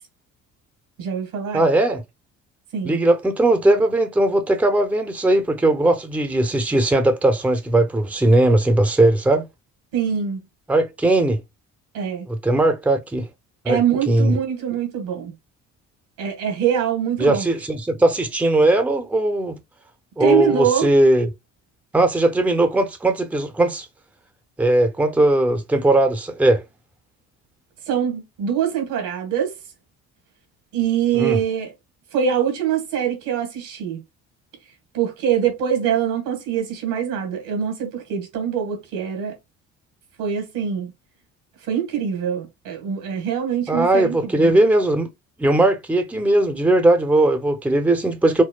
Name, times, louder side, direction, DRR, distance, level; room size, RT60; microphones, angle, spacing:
voice 1, 1.0-1.7 2.7-3.0 9.9-10.4 11.9-12.3 13.6-15.3 16.2-17.5 20.2-20.9 27.9-29.5 30.7-31.7 32.1-34.0 34.9-39.3 40.2-40.9 41.7-44.5, right 8 dB, 85° right, 1.5 m, -24 dB
voice 2, 1.5-2.0 2.8-9.4 10.7-11.4 12.3-13.3 13.6-13.8 14.1-14.3 17.2-19.6 20.2-21.3 21.9-23.9 24.6-26.6 31.1-31.4 43.7-45.1 45.4-48.4, right 1 dB, 5° right, 0.5 m, -18 dB
4.4 x 2.0 x 2.3 m
supercardioid pair, 75°, 33 cm